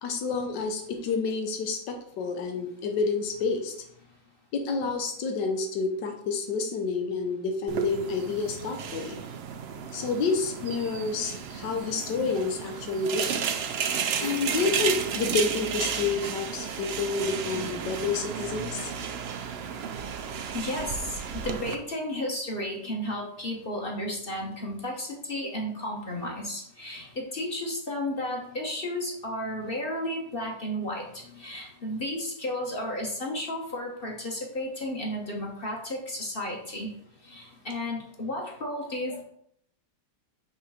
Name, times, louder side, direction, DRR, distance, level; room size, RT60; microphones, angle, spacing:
voice 1, 0.0-3.7 4.5-9.2 9.9-13.3 14.2-18.9 39.1-39.2, left 4 dB, 85° left, 4 dB, 1.5 m, -29 dB
sound 1, 7.7-21.8, right 7 dB, 85° right, 0.5 m, -33 dB
voice 2, 20.5-36.9 37.3-39.2, left 1 dB, 35° left, -1 dB, 1.2 m, -33 dB
5.7 x 3.7 x 5.6 m, 0.70 s
omnidirectional pair, 1.8 m